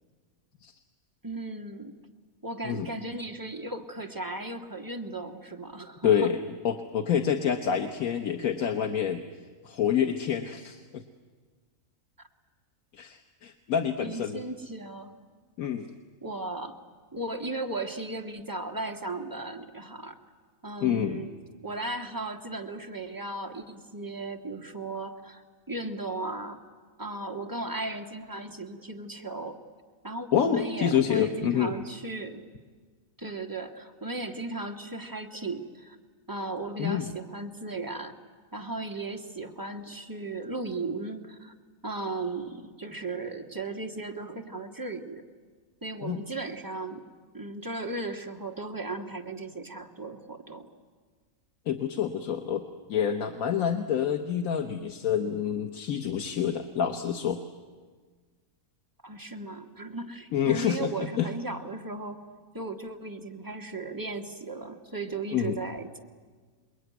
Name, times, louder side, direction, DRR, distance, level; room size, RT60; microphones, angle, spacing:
voice 1, 1.2-2.0 2.4-6.3 14.0-15.2 16.2-16.8 17.1-20.1 20.6-21.3 21.6-26.6 27.0-29.6 30.0-32.4 33.2-36.0 36.3-38.1 38.5-41.5 41.8-45.2 45.8-47.1 47.3-50.7 59.0-62.2 62.5-66.0, right 2 dB, 15° right, 2 dB, 1.6 m, -36 dB
voice 2, 6.0-6.4 6.6-9.2 9.6-11.0 12.9-14.4 15.6-15.9 20.8-21.2 30.3-31.7 36.8-37.1 46.0-46.2 51.7-57.4 60.3-60.9 61.2-61.3 65.3-65.6, left 8 dB, 80° left, 5 dB, 1.5 m, -27 dB
28.0 x 21.5 x 9.3 m, 1.5 s
omnidirectional pair, 1.5 m